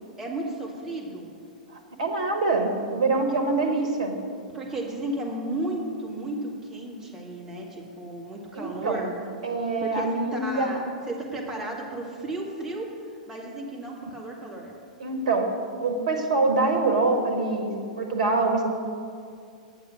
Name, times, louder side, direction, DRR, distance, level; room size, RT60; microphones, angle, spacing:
voice 1, 0.2-1.3 4.5-9.1 9.8-14.8, right 1 dB, 10° right, -3 dB, 2.1 m, -34 dB
voice 2, 1.7-4.2 8.5-9.0 9.4-10.8 15.0-15.5 15.8-18.6, right 3 dB, 55° right, 5 dB, 1.5 m, -25 dB
9.0 x 8.5 x 6.4 m, 2.3 s
figure-of-eight pair, 100°, 4 cm